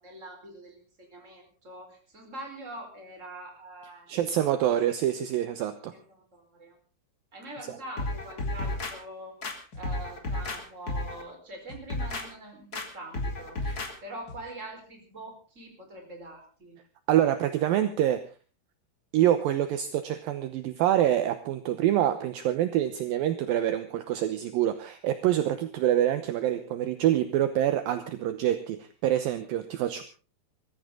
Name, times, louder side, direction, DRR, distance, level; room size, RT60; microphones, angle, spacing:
voice 1, 0.0-4.1 4.5-4.8 5.9-6.8 7.3-9.3 9.7-13.6 14.0-16.8, right 1 dB, 20° right, 3 dB, 4.5 m, -44 dB
voice 2, 4.1-5.9 13.7-13.8 17.1-18.2 19.1-30.0, right 12 dB, 75° right, 9 dB, 2.5 m, -26 dB
sound 1, 8.0-8.9 9.4-10.6 10.9-11.2 11.7-12.3 12.7-12.9 13.1-13.9 14.3-14.4, left 2 dB, 30° left, 2.3 m, -32 dB
22.5 x 14.5 x 3.8 m, 0.35 s
omnidirectional pair, 4.6 m